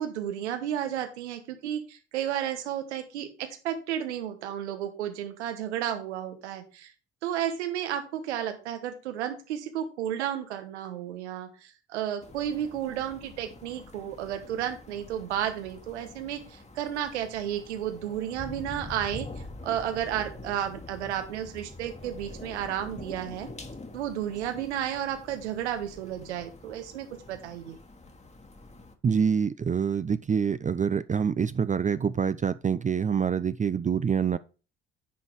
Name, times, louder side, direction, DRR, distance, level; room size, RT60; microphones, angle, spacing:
voice 1, 0.0-6.9 7.2-23.5 23.9-27.8, right 10 dB, 85° right, 1.2 m, -32 dB
sound 1, 12.2-28.9, left 2 dB, 20° left, 1.4 m, -45 dB
voice 2, 29.0-34.4, right 7 dB, 25° right, 0.4 m, -26 dB
10.0 x 4.0 x 4.7 m
hypercardioid pair, 50°, 33 cm